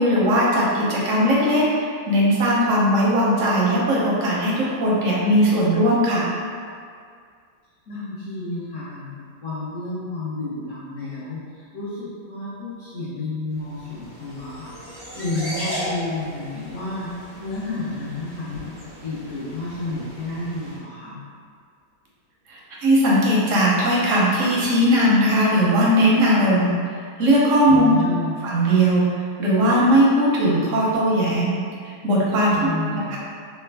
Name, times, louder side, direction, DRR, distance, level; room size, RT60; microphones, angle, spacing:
voice 1, 0.0-6.3 22.5-26.7 27.2-28.0 28.4-29.0 29.4-31.5 31.8-32.6 33.1-33.2, equal, 65° right, -5 dB, 0.8 m, -18 dB
voice 2, 7.9-21.2 27.7-28.4 32.5-33.1, left 2 dB, 60° left, -14 dB, 1.1 m, -31 dB
sound 1, 13.6-20.8, equal, 10° right, 0.6 m, -36 dB
3.3 x 2.2 x 3.3 m, 2.2 s
omnidirectional pair, 1.8 m